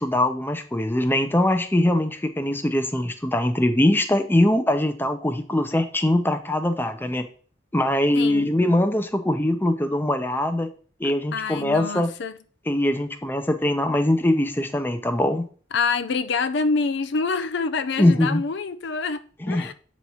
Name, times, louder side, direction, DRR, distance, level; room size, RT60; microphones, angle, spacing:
voice 1, 0.0-7.3 7.7-10.7 11.0-12.1 12.7-15.5 18.0-18.4 19.4-19.7, left 1 dB, 10° left, 0.7 m, -22 dB
voice 2, 8.1-8.5 11.3-12.3 15.7-19.7, left 4 dB, 65° left, 0.5 m, -26 dB
8.2 x 3.1 x 5.5 m
head